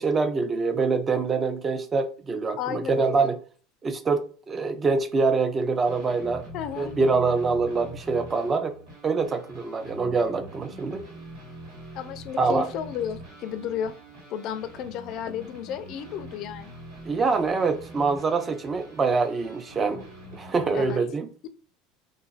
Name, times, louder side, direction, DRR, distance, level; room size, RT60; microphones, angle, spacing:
voice 1, 0.0-3.4 3.8-6.5 6.8-8.7 9.0-11.0 12.4-12.7 17.0-20.0 20.3-21.3, right 4 dB, 25° right, 0.4 m, -25 dB
voice 2, 2.6-3.3 6.5-6.9 11.9-13.9 14.3-16.7 20.7-21.0, left 8 dB, 55° left, 0.3 m, -33 dB
sound 1, 5.8-21.0, equal, 75° right, 1.4 m, -44 dB
3.0 x 2.3 x 2.4 m
supercardioid pair, 115°, 0 cm